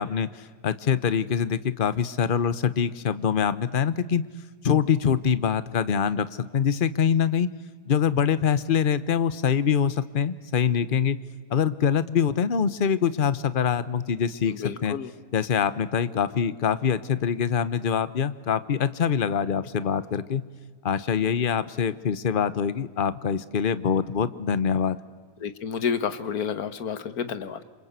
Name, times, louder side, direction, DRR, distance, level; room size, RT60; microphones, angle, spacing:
voice 1, 0.0-4.2 4.6-7.5 7.9-11.2 11.5-15.0 15.3-20.4 20.8-25.0, left 7 dB, 40° left, 15 dB, 1.0 m, -24 dB
voice 2, 14.4-15.1 25.4-27.6, left 7 dB, 90° left, 12 dB, 1.7 m, -30 dB
28.0 x 26.0 x 8.1 m, 1.5 s
omnidirectional pair, 1.5 m